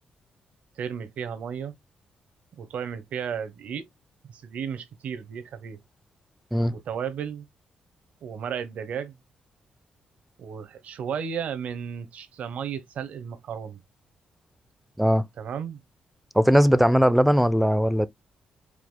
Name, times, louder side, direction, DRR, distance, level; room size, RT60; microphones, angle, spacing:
voice 1, 0.8-1.7 2.6-3.9 4.2-5.8 6.7-7.5 8.2-9.1 10.4-13.8 15.4-15.8, right 7 dB, 60° right, 0.8 m, -34 dB
voice 2, 16.4-18.1, equal, ahead, 0.3 m, -19 dB
4.8 x 2.3 x 3.7 m
wide cardioid pair, 160°, 3 cm